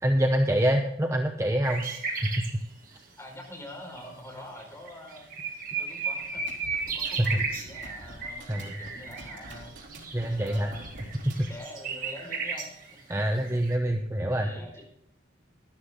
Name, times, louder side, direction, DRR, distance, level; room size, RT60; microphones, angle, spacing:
voice 1, 0.0-1.9 2.2-2.4 2.9-3.0 7.2-7.4 8.5-8.8 10.1-10.7 11.4-11.5 13.1-14.5, equal, 15° right, 4 dB, 0.7 m, -26 dB
sound 1, 1.6-2.6 4.0-4.1 4.6-4.7 4.9-13.8, right 4 dB, 45° right, 2.0 m, -35 dB
voice 2, 3.2-5.3 5.8-6.4 6.8-9.7 10.2-10.8 11.4-12.7 14.4-14.8, left 1 dB, 15° left, -2 dB, 4.7 m, -45 dB
sound 2, 6.2-11.6, right 1 dB, 85° right, 3.3 m, -47 dB
13.0 x 11.5 x 3.7 m, 0.76 s
head